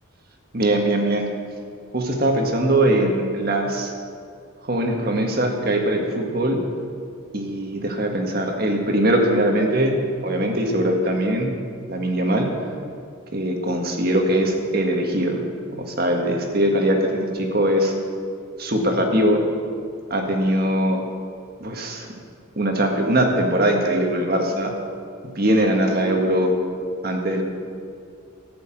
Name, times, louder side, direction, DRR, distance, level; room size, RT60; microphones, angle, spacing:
voice 1, 0.5-1.3 1.9-3.9 4.6-6.6 7.3-10.0 10.2-11.5 11.9-12.5 13.3-15.4 15.9-17.9 18.6-19.4 20.1-21.0 21.6-22.1 22.6-24.7 25.2-26.6 27.0-27.4, right 1 dB, 45° right, 2 dB, 1.7 m, -21 dB
14.0 x 6.9 x 9.0 m, 2.3 s
head